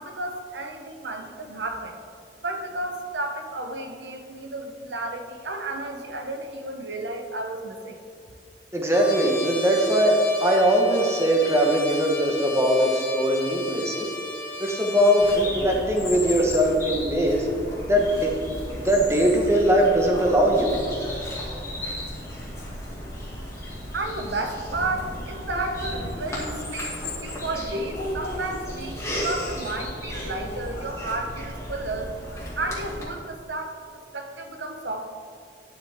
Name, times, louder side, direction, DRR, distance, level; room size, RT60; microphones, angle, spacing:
voice 1, 0.0-2.0 2.4-8.0 23.9-32.1 32.6-35.1, right 2 dB, 75° right, 5 dB, 0.9 m, -32 dB
voice 2, 8.7-14.1 14.6-17.5 17.9-18.3 18.8-20.7, equal, 15° right, 0 dB, 1.2 m, -21 dB
Trumpet, 8.9-15.4, left 2 dB, 60° left, 1.8 m, -35 dB
Bird vocalization bird call bird song, 15.2-33.0, left 1 dB, 15° left, 2.2 m, -34 dB
11.0 x 7.6 x 3.6 m, 2.3 s
head